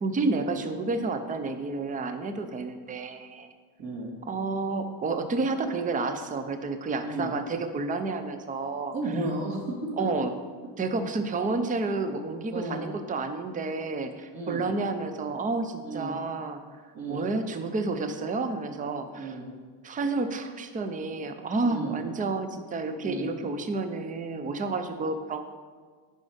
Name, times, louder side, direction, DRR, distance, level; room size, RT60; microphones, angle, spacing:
voice 1, 0.0-3.5 4.3-8.9 10.0-10.3 10.8-16.6 17.1-19.4 19.8-25.5, right 3 dB, 20° right, 8 dB, 0.6 m, -30 dB
voice 2, 3.8-4.1 7.0-7.3 8.9-9.8 12.5-12.9 14.3-14.7 15.8-16.2 16.9-17.2 19.1-19.5 21.6-22.0 23.0-23.4, right 2 dB, 55° right, -4 dB, 2.4 m, -33 dB
10.5 x 5.2 x 5.0 m, 1.5 s
cardioid pair, 130°, 45 cm